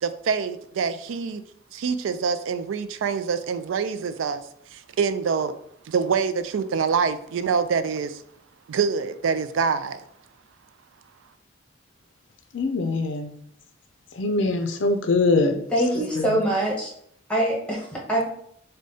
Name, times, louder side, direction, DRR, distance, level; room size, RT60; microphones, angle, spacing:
voice 1, 0.0-1.4 1.7-4.4 4.7-5.5 5.9-8.2 8.7-10.0, right 6 dB, 85° right, 11 dB, 0.3 m, -25 dB
voice 2, 12.5-13.3 14.2-15.6 16.2-16.4, left 3 dB, 70° left, 6 dB, 0.4 m, -23 dB
voice 3, 15.7-16.9 17.3-18.3, right 1 dB, 5° left, -4 dB, 1.0 m, -24 dB
6.2 x 2.2 x 2.7 m, 0.69 s
head